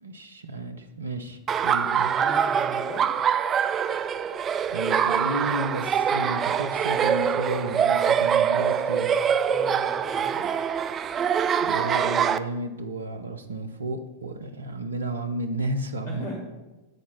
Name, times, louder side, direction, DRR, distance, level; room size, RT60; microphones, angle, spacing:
voice 1, 0.0-2.1 4.7-9.2 11.6-16.4, right 1 dB, 75° right, 7 dB, 0.7 m, -32 dB
Laughter, 1.5-12.4, right 8 dB, 25° right, 0.3 m, -24 dB
voice 2, 1.7-3.1 9.5-10.6 16.0-16.4, equal, 45° left, -2 dB, 2.0 m, -38 dB
8.0 x 4.2 x 6.0 m, 1.1 s
figure-of-eight pair, 90°, 0 cm